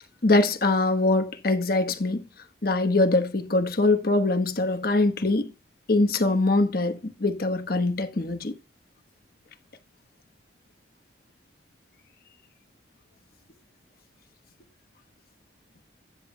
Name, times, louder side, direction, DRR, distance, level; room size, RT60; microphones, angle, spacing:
voice 1, 0.2-2.2 2.6-5.5 5.9-8.5, left 2 dB, 50° left, 1.1 m, -23 dB
13.0 x 8.5 x 2.2 m
head